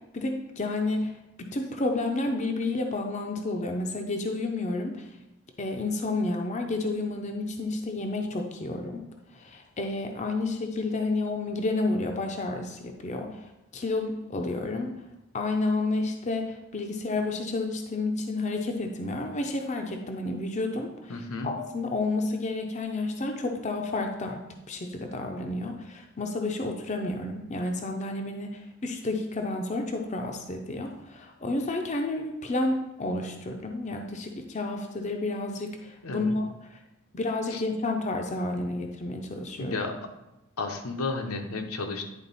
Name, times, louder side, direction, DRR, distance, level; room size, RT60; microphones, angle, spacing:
voice 1, 0.1-5.1 5.6-9.1 9.3-15.0 15.3-36.5 37.1-39.8, left 2 dB, 30° left, 3 dB, 0.6 m, -30 dB
voice 2, 21.1-21.5 36.0-36.4 37.5-37.6 39.6-39.9 40.6-42.0, left 3 dB, 80° left, 4 dB, 0.9 m, -32 dB
9.9 x 3.8 x 4.1 m, 0.94 s
head